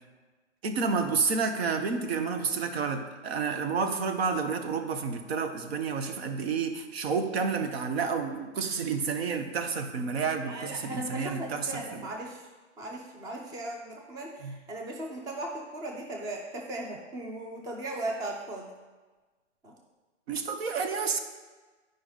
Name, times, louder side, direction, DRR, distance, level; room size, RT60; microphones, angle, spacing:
voice 1, 0.6-12.0 14.4-14.5 20.3-21.2, right 5 dB, 55° right, 7 dB, 1.0 m, -30 dB
voice 2, 10.4-12.5 12.8-18.7 19.6-19.8, right 1 dB, 10° right, 0 dB, 0.6 m, -37 dB
9.8 x 5.2 x 4.0 m, 1.3 s
hypercardioid pair, 135°, 36 cm